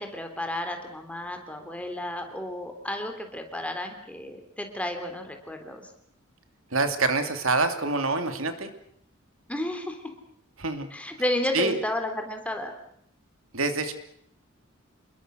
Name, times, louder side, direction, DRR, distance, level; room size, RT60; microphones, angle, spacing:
voice 1, 0.0-5.8 9.5-10.0 10.9-12.7, left 1 dB, 5° left, 5 dB, 3.4 m, -32 dB
voice 2, 6.7-8.7 10.6-10.9 11.5-11.7 13.5-13.9, right 3 dB, 80° right, 8 dB, 2.8 m, -26 dB
28.0 x 21.5 x 6.4 m, 0.71 s
head